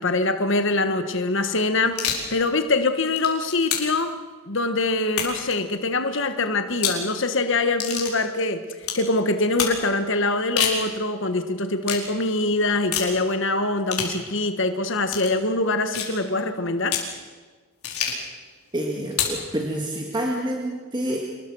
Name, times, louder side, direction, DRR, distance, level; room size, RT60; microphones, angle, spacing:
voice 1, 0.0-2.0 2.3-4.1 4.5-8.6 8.9-17.0, left 2 dB, 55° left, 8 dB, 1.5 m, -24 dB
sound 1, 1.9-2.3 2.9-4.0 5.1-5.5 6.7-7.0 7.8-8.1 8.8-9.0 9.6-9.8 10.4-10.8 11.8-12.1 12.9-13.1 13.9-14.2 15.1-15.3 15.9-16.2 16.9-17.1 17.8-18.3 19.1-19.4, left 7 dB, 80° left, 4.8 m, -27 dB
voice 2, 18.7-21.2, right 1 dB, 20° right, 0 dB, 2.1 m, -28 dB
26.5 x 21.0 x 6.3 m, 1.4 s
head